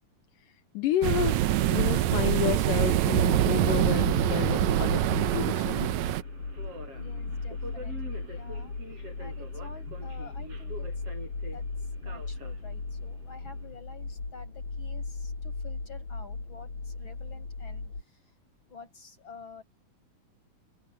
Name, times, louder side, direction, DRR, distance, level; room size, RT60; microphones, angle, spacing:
voice 1, 0.7-1.4 1.7-5.9, left 13 dB, 75° left, 2.3 m, -31 dB
sound 1, 1.0-6.2, right 13 dB, 80° right, 1.7 m, -25 dB
sound 2, 2.1-18.0, left 3 dB, 50° left, 8.0 m, -37 dB
Subway metro underground, 4.1-13.8, right 1 dB, 40° right, 8.6 m, -46 dB
voice 2, 6.9-10.9 11.5-11.7 12.0-18.2 18.7-19.6, left 3 dB, 30° left, 7.4 m, -49 dB
omnidirectional pair, 4.1 m